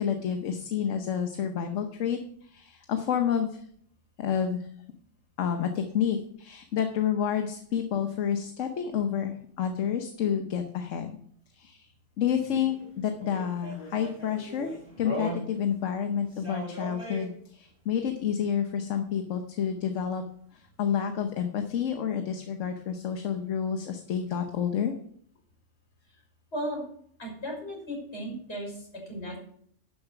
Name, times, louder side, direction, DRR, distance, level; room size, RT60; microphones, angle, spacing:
voice 1, 0.0-3.6 4.2-4.7 5.4-11.2 11.5-11.9 12.2-20.2 20.5-24.9, left 8 dB, 75° left, 6 dB, 1.2 m, -29 dB
sound 1, 12.3-15.8 16.2-17.3 20.9-21.0, equal, 20° left, 3.6 m, -39 dB
voice 2, 26.5-26.8 27.2-29.4, equal, 55° left, -2 dB, 6.1 m, -35 dB
11.0 x 7.0 x 5.9 m, 0.64 s
omnidirectional pair, 1.3 m